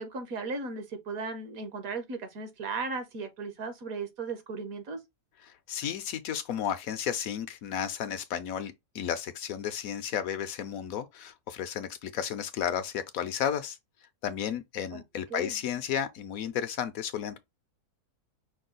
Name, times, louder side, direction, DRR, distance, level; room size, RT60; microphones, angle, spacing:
voice 1, 0.0-5.0 14.9-15.0 15.3-15.6, right 4 dB, 65° right, 1.3 m, -36 dB
voice 2, 5.5-13.8 14.2-17.4, left 9 dB, 70° left, 0.9 m, -33 dB
5.3 x 2.3 x 3.8 m
omnidirectional pair, 1.6 m